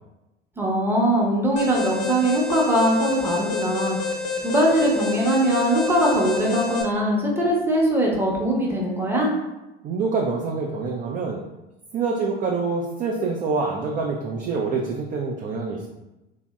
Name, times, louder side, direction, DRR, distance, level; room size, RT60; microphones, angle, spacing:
voice 1, 0.6-4.0 4.4-9.3, right 1 dB, 5° right, -3 dB, 0.7 m, -21 dB
Alarm, 1.6-6.8, left 4 dB, 50° left, 0.7 m, -28 dB
voice 2, 9.8-11.4 11.9-15.9, right 4 dB, 30° right, 0 dB, 0.4 m, -26 dB
3.0 x 2.7 x 2.2 m, 1.0 s
hypercardioid pair, 75°, 31 cm